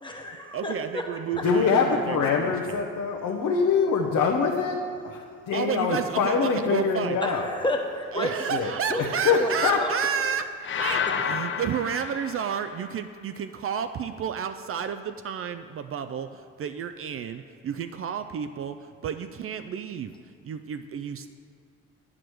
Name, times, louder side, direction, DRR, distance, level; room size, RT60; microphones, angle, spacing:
voice 1, 0.0-1.0 1.4-1.5 7.2-8.3 8.9-9.0 9.4-9.5 9.8-9.9, left 1 dB, 15° left, 1 dB, 1.1 m, -30 dB
voice 2, 0.5-2.7 5.5-7.2 8.1-10.4 10.8-20.1 20.4-21.3, right 7 dB, 50° right, 9 dB, 0.4 m, -31 dB
voice 3, 1.4-4.8 5.0-7.5 8.5-8.7 9.0-9.8, left 5 dB, 70° left, -1 dB, 0.8 m, -24 dB
sound 1, 10.6-12.9, left 7 dB, 40° left, 0.5 m, -30 dB
8.8 x 4.9 x 6.2 m, 2.1 s
cardioid pair, 90°, 30 cm